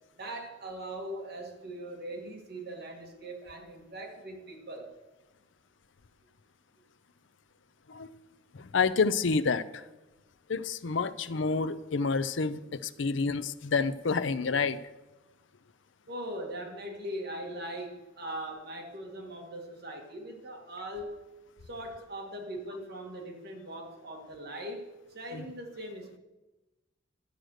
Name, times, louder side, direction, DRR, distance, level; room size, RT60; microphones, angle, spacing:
voice 1, 0.2-4.9 16.1-21.2 21.6-26.2, right 1 dB, 55° right, 1 dB, 2.1 m, -40 dB
voice 2, 8.5-9.8 10.5-14.8, left 4 dB, 70° left, 14 dB, 0.6 m, -28 dB
12.0 x 7.8 x 6.4 m, 1.1 s
head